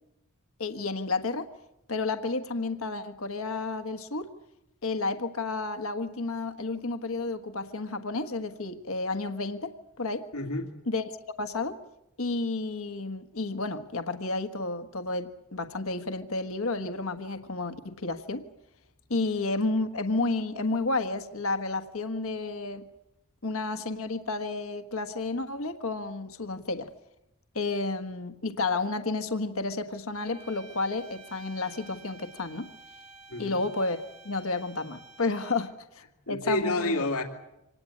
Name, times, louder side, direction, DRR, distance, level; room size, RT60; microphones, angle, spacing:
voice 1, 0.6-1.5 1.9-4.3 4.8-10.3 10.9-11.1 11.4-11.8 12.2-18.5 19.1-22.8 23.4-26.9 27.5-32.7 33.4-36.0 36.3-37.0, left 3 dB, 70° left, 8 dB, 1.5 m, -31 dB
voice 2, 10.3-10.7 33.3-33.6 36.3-37.2, left 2 dB, 85° left, 4 dB, 2.6 m, -29 dB
sound 1, 30.1-35.9, right 3 dB, 85° right, 2.9 m, -51 dB
26.0 x 19.5 x 8.7 m, 0.89 s
head